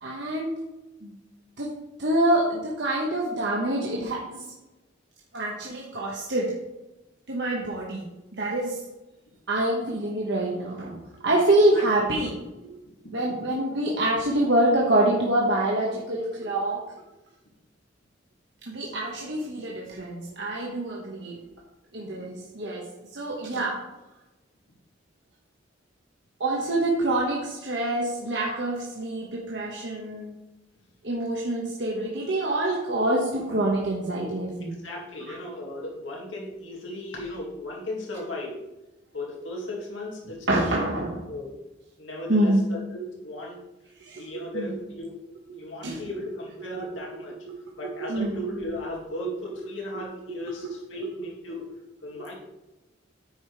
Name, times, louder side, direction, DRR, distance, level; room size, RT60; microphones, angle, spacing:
voice 1, 0.0-0.5 1.0-1.1 1.6-1.7 2.0-4.5 5.3-6.5 7.3-8.0 8.4-8.8 9.5-12.5 13.1-16.8 18.7-21.4 21.9-22.8 23.1-23.8 26.4-30.3 31.0-34.7 35.3-35.4 40.5-41.2 42.3-42.6 44.0-44.7 45.8-46.0 47.5-47.6 47.8-48.3, right 1 dB, 65° right, -3 dB, 1.3 m, -26 dB
voice 2, 11.5-11.8 13.0-13.5 22.2-22.3 34.8-38.6 39.1-40.8 41.3-41.5 42.0-43.6 44.2-45.1 45.5-47.4 47.8-51.7 52.0-52.4, left 1 dB, 85° left, -2 dB, 2.3 m, -36 dB
9.4 x 5.1 x 4.7 m, 1.0 s
head